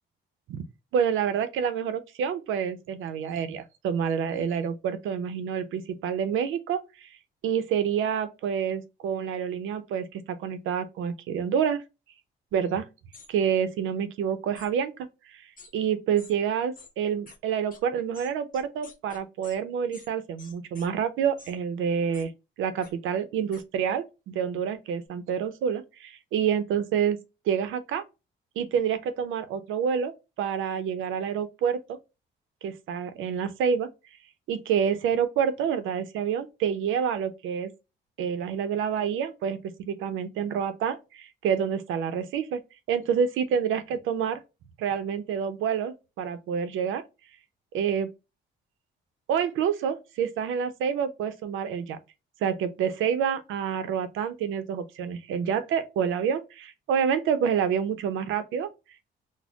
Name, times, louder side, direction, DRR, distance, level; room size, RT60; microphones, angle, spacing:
voice 1, 0.9-7.1 7.4-11.8 12.5-12.8 13.3-14.9 15.3-15.4 15.7-22.3 22.6-27.2 27.5-28.0 28.6-30.1 30.4-32.0 32.6-33.9 34.5-37.7 38.2-42.6 42.9-44.4 44.8-47.0 47.7-48.1 49.3-52.0 52.4-58.7, right 7 dB, 85° right, 0.6 m, -28 dB
sound 1, 13.1-13.3 14.5-14.7 15.6-15.7 16.2-16.3 16.7-16.9 17.3-17.4 17.7-17.8 18.1-19.6 19.9-20.1 20.4-20.9 21.4-21.5 22.1-22.3 22.8-22.9 23.5-23.6, left 4 dB, 45° left, 1.0 m, -49 dB
4.1 x 2.1 x 2.8 m
cardioid pair, 90°, 20 cm